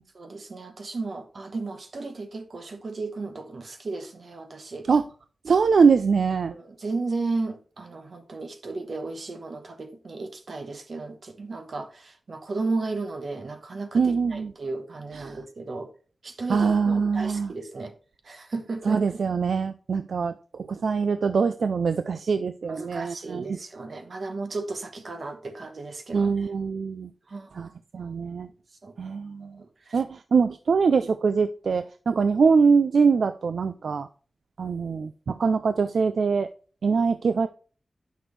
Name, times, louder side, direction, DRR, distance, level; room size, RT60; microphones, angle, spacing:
voice 1, 0.1-4.9 6.5-15.9 16.2-17.9 18.2-19.0 22.7-26.5 27.3-27.7 28.8-28.9 29.4-30.0, right 3 dB, 60° right, 1.1 m, -34 dB
voice 2, 5.4-6.6 13.9-14.5 15.1-15.4 16.5-17.5 18.9-20.3 20.7-23.6 26.1-27.1 27.5-27.7 27.9-28.5 29.0-29.5 29.9-34.1 34.6-36.5 36.8-37.5, right 5 dB, 80° right, 0.3 m, -23 dB
9.1 x 6.0 x 3.2 m
wide cardioid pair, 120°, 0 cm